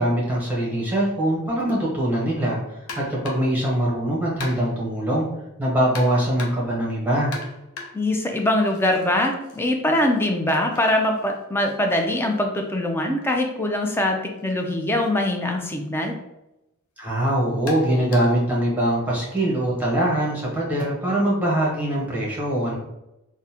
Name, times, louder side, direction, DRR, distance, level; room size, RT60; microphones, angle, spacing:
voice 1, 0.0-2.6 2.9-5.3 5.6-7.3 17.0-22.8, right 1 dB, 10° right, -5 dB, 0.9 m, -22 dB
sound 1, 2.9-3.6 4.4-4.9 5.9-6.8 7.3-9.1 9.4-13.3 14.4-14.5 15.0-15.1 16.0-16.2 17.7-18.5, left 3 dB, 70° left, 0.6 m, -41 dB
voice 2, 7.9-16.1, left 1 dB, 10° left, 3 dB, 0.3 m, -23 dB
3.5 x 2.0 x 2.8 m, 0.92 s
head